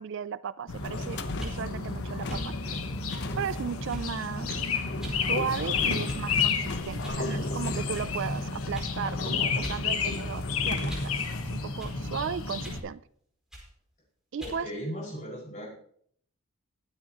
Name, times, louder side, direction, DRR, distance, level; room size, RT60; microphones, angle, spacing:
voice 1, 0.0-2.5 3.4-4.6 5.1-13.0 14.3-14.7, right 7 dB, 55° right, 17 dB, 0.4 m, -35 dB
sound 1, 0.7-12.8, left 4 dB, 75° left, 1.4 m, -31 dB
sound 2, 0.8-11.4, left 2 dB, 50° left, 0.9 m, -38 dB
sound 3, 1.3-1.6 2.3-2.5 3.1-3.3 3.9-4.2 5.0-5.2 6.0-6.4 7.0-7.2 7.9-8.1 8.7-8.9 9.6-9.8 10.2-11.2 11.8-12.0 12.6-12.8 13.5-13.7 14.4-14.6, equal, 5° right, 5.0 m, -42 dB
voice 2, 14.4-15.7, equal, 35° left, -4 dB, 5.7 m, -37 dB
22.0 x 9.6 x 3.0 m, 0.64 s
head